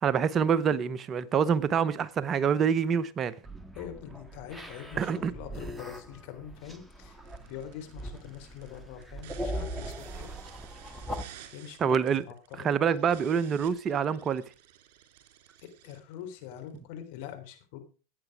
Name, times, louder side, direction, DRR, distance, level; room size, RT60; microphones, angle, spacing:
voice 1, 0.0-3.3 5.0-5.3 11.8-12.2 12.6-14.4, right 7 dB, 30° right, 0.8 m, -26 dB
sound 1, 3.4-11.2, equal, 5° right, 1.7 m, -40 dB
voice 2, 3.8-10.3 11.5-12.0 12.6-12.7 15.6-17.8, left 10 dB, 60° left, 3.6 m, -44 dB
sound 2, 7.2-16.8, right 11 dB, 60° right, 3.3 m, -53 dB
15.0 x 9.3 x 4.8 m
hypercardioid pair, 90°, 0 cm